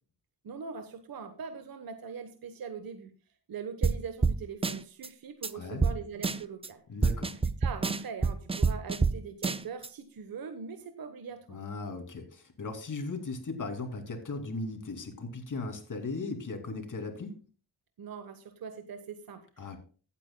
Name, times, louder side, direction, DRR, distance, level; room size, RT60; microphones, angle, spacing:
voice 1, 0.4-3.1 3.5-6.8 7.6-11.6 18.0-19.8, right 6 dB, 55° right, 7 dB, 1.2 m, -42 dB
sound 1, 3.8-4.0 4.2-4.4 4.6-5.1 5.4-5.5 5.8-5.9 6.2-6.7 7.0-9.1 9.4-9.9, right 4 dB, 15° right, 0.5 m, -27 dB
voice 2, 5.5-5.9 6.9-7.4 11.5-17.4 19.6-19.8, left 3 dB, 45° left, 4 dB, 2.7 m, -37 dB
15.0 x 8.6 x 2.2 m, 0.38 s
cardioid pair, 75°, 43 cm